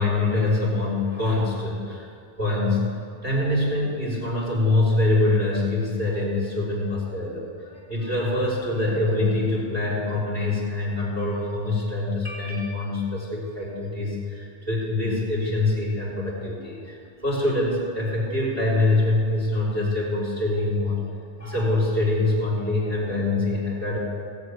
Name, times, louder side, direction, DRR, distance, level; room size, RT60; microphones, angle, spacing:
voice 1, 0.0-2.1 2.4-2.9 3.2-21.0 21.4-24.0, left 2 dB, 15° left, -6 dB, 4.6 m, -24 dB
19.0 x 7.9 x 6.6 m, 2.4 s
omnidirectional pair, 1.1 m